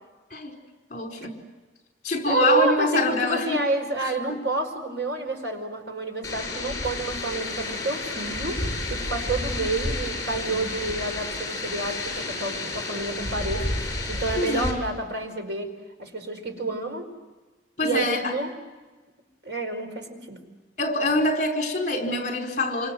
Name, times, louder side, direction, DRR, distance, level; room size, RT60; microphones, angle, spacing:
voice 1, 0.9-1.3 2.0-3.6 10.5-10.6 14.4-14.8 17.8-18.3 20.8-22.9, left 2 dB, 45° left, 3 dB, 4.8 m, -25 dB
voice 2, 2.2-8.6 8.9-17.1 17.8-18.5 19.4-20.4, right 3 dB, 80° right, 5 dB, 4.7 m, -29 dB
sound 1, 6.2-14.7, left 2 dB, 20° left, 6.4 m, -31 dB
28.0 x 26.0 x 7.9 m, 1.2 s
head